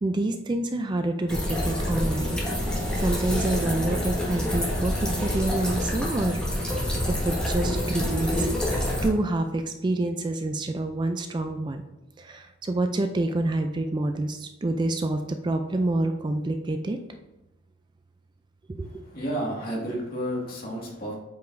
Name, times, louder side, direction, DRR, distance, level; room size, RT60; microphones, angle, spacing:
voice 1, 0.0-2.4 3.0-6.4 7.1-11.8 12.2-17.0 18.7-19.0, right 2 dB, 25° right, 7 dB, 0.3 m, -27 dB
sound 1, 1.3-9.1, left 1 dB, 5° left, 1.4 m, -27 dB
voice 2, 19.0-21.1, equal, 50° left, -3 dB, 1.9 m, -31 dB
8.1 x 4.8 x 2.6 m, 0.96 s
head